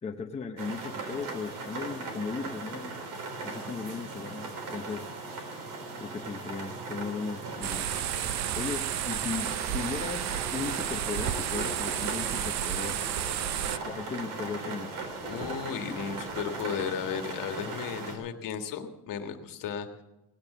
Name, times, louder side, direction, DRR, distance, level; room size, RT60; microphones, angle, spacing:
voice 1, 0.0-3.0 3.4-5.1 6.0-7.9 8.5-13.0 13.8-14.9, left 5 dB, 15° left, 3 dB, 0.7 m, -37 dB
sound 1, 0.6-18.2, right 3 dB, 75° right, 3.7 m, -38 dB
sound 2, 7.6-13.8, right 11 dB, 45° right, 0.5 m, -32 dB
sound 3, 7.8-10.1 14.6-16.9, right 2 dB, 15° right, 1.2 m, -49 dB
voice 2, 15.2-19.9, left 7 dB, 55° left, 6 dB, 1.6 m, -34 dB
17.5 x 8.8 x 7.1 m, 0.99 s
cardioid pair, 155°, 39 cm